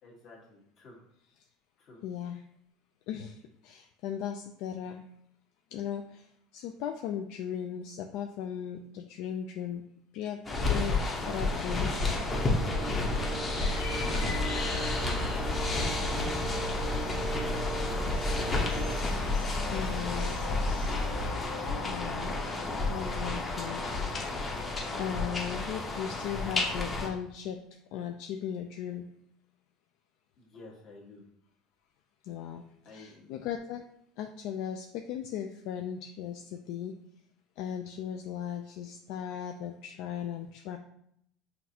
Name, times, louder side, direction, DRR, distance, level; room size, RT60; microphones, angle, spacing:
voice 1, 0.0-1.0 1.8-2.0 14.5-15.6 16.5-17.1 23.3-23.5 30.4-31.2 32.8-33.3, left 2 dB, 45° left, -3 dB, 1.4 m, -52 dB
voice 2, 2.0-2.4 3.1-5.0 5.7-6.3 6.5-9.8 10.1-10.4 10.7-11.0 11.3-12.0 19.7-20.3 21.8-22.4 22.9-23.8 25.0-27.6 27.9-29.1 32.2-33.8 34.2-36.9 37.6-40.8, left 9 dB, 65° left, 4 dB, 0.3 m, -37 dB
sound 1, 10.4-27.1, left 3 dB, 20° left, 0.8 m, -31 dB
sound 2, 12.3-19.0, right 4 dB, 35° right, 0.5 m, -39 dB
sound 3, 13.6-21.3, left 2 dB, 80° left, 0.8 m, -35 dB
5.8 x 2.6 x 2.8 m, 0.73 s
cardioid pair, 140°, 0 cm